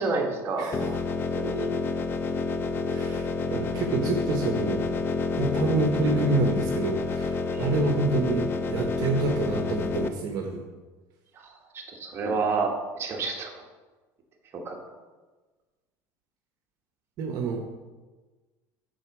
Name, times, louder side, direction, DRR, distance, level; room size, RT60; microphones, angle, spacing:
voice 1, 0.0-1.7 7.5-7.6 11.4-13.6 14.5-14.8, right 4 dB, 30° right, 0 dB, 1.3 m, -30 dB
sound 1, 0.7-10.1, left 4 dB, 30° left, 0.4 m, -29 dB
voice 2, 2.9-4.9 5.4-10.6 17.2-17.6, right 3 dB, 55° right, 2 dB, 0.9 m, -27 dB
7.8 x 4.4 x 5.9 m, 1.3 s
cardioid pair, 145°, 8 cm